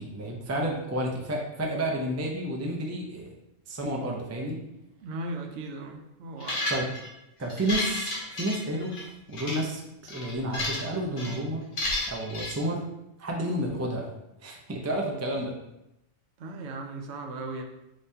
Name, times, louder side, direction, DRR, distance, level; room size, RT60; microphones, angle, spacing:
voice 1, 0.0-3.3 3.7-4.6 6.7-6.9 7.4-11.6 12.1-12.8 13.2-14.1 14.4-15.5, right 1 dB, 25° right, -1 dB, 0.3 m, -31 dB
voice 2, 5.0-6.7 16.4-17.6, right 2 dB, 65° right, 2 dB, 0.9 m, -37 dB
sound 1, 6.4-7.1 7.5-9.0 9.3-9.6 10.1-10.9 11.2-11.4 11.8-12.5, left 2 dB, 70° left, 1.4 m, -31 dB
5.4 x 3.1 x 2.7 m, 0.88 s
omnidirectional pair, 1.3 m